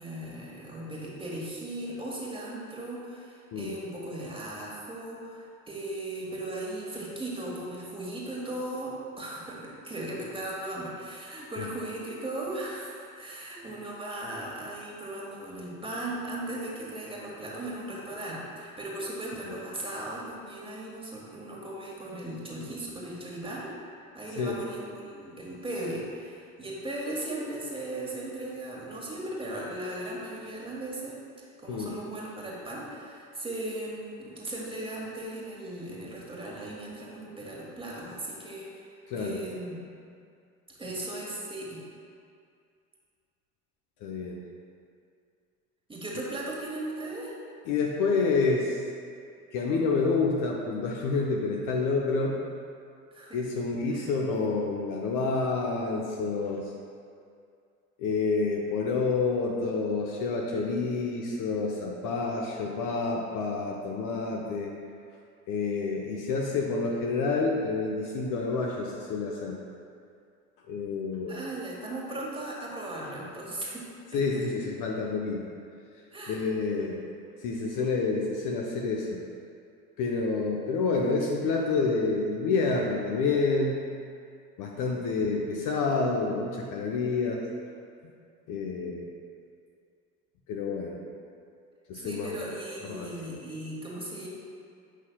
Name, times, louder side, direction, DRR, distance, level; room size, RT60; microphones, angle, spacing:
voice 1, 0.0-23.7 24.1-31.2 31.6-39.8 40.8-41.8 45.9-47.4 53.1-53.4 53.9-54.0 71.3-73.9 74.1-74.4 76.1-76.5 84.7-85.0 92.0-94.3, right 1 dB, 10° right, -4 dB, 1.4 m, -37 dB
voice 2, 39.1-39.4 44.0-44.4 47.7-48.8 49.5-52.4 53.3-56.6 58.0-64.7 65.5-69.6 70.7-71.4 74.1-75.5 76.3-77.0 77.4-79.2 80.0-83.8 84.6-87.4 88.5-89.0 90.5-91.0 91.9-92.3 92.8-93.1, left 4 dB, 45° left, 0 dB, 0.7 m, -28 dB
8.1 x 5.5 x 2.3 m, 2.3 s
figure-of-eight pair, 65°, 44 cm